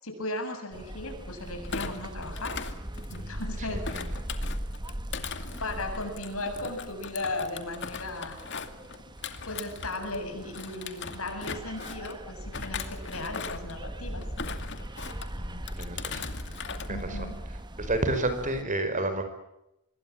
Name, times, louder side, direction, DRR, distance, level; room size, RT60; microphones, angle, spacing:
voice 1, 0.0-2.5 3.1-3.8 5.6-8.5 9.5-14.2 16.9-17.4, left 2 dB, 75° left, 5 dB, 8.0 m, -36 dB
sound 1, 0.7-18.6, right 1 dB, 20° right, 1.4 m, -40 dB
Thump thud, 1.6-3.4 3.8-10.2 10.5-12.1 12.5-13.8 14.2-15.3 15.7-16.9 17.2-17.5, left 5 dB, 55° left, 2.4 m, -39 dB
voice 2, 3.7-4.1 15.4-16.3 16.9-17.3 17.8-19.2, right 2 dB, 35° right, 9 dB, 5.1 m, -31 dB
26.0 x 22.0 x 8.9 m, 0.86 s
head